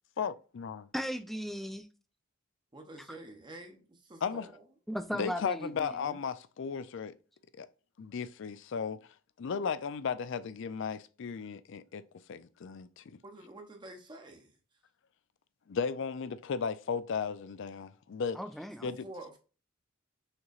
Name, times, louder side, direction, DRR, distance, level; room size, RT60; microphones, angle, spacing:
voice 1, 0.2-0.9 4.2-4.5 5.1-7.1 7.6-7.7 8.0-9.0 9.4-12.0 12.3-13.0 15.7-18.4 18.8-19.1, left 6 dB, 65° left, 0.4 m, -35 dB
voice 2, 0.9-1.9 4.9-6.2 18.3-18.9, equal, ahead, 0.4 m, -37 dB
voice 3, 2.7-4.6 13.2-14.6 18.7-19.4, right 1 dB, 25° right, 0.8 m, -48 dB
6.4 x 3.0 x 2.4 m
head